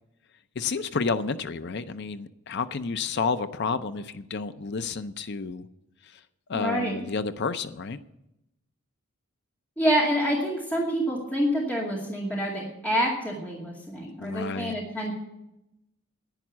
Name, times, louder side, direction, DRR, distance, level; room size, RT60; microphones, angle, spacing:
voice 1, 0.6-5.6 6.0-6.2 6.5-8.0 14.2-14.7, left 4 dB, 50° left, 12 dB, 0.5 m, -30 dB
voice 2, 6.5-7.0 9.8-15.1, equal, 5° left, -4 dB, 2.4 m, -27 dB
11.0 x 10.0 x 7.3 m, 0.88 s
head